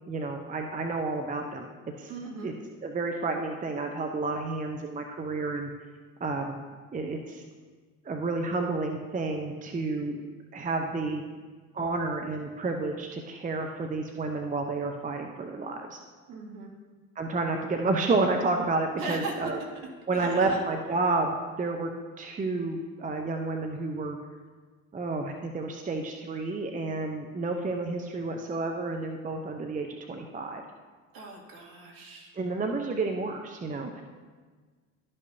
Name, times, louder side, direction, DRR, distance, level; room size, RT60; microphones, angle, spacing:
voice 1, 0.1-1.7 2.0-2.1 2.4-2.5 2.8-5.7 6.2-6.6 6.9-7.4 8.0-10.2 10.5-11.2 11.7-16.0 17.2-19.6 20.1-21.9 22.2-24.2 24.9-30.6 32.4-34.0, right 3 dB, 20° right, 4 dB, 0.7 m, -30 dB
voice 2, 2.1-2.5 11.3-11.4 16.3-16.7 19.0-19.3 20.1-20.6 31.1-32.3, right 3 dB, 55° right, -1 dB, 2.3 m, -38 dB
12.0 x 5.4 x 2.7 m, 1.4 s
hypercardioid pair, 70°, 40 cm